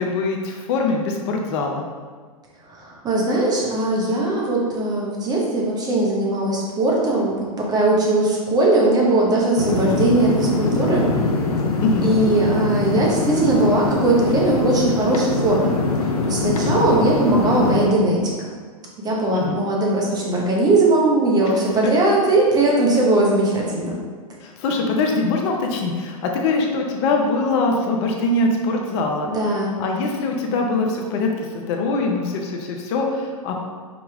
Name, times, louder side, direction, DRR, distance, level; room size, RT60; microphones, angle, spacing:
voice 1, 0.0-1.8 11.8-12.1 19.3-19.6 24.4-29.3 29.8-33.6, left 3 dB, 50° left, 1 dB, 0.7 m, -23 dB
voice 2, 2.8-11.1 12.0-15.7 16.0-18.3 19.0-24.0 29.2-29.9, right 2 dB, 20° right, -3 dB, 1.1 m, -19 dB
sound 1, 9.6-17.9, left 3 dB, 90° left, 0.7 m, -22 dB
5.0 x 3.0 x 3.5 m, 1.6 s
hypercardioid pair, 120°, 19 cm